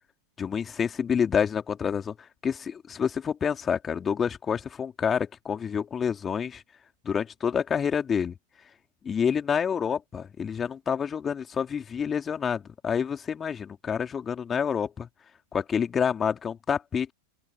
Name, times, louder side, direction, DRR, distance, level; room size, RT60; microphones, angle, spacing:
voice 1, 0.4-6.6 7.0-8.3 9.0-15.1 15.5-17.1, left 7 dB, 20° left, 3.1 m, -28 dB
open air
figure-of-eight pair, 90°, 0 cm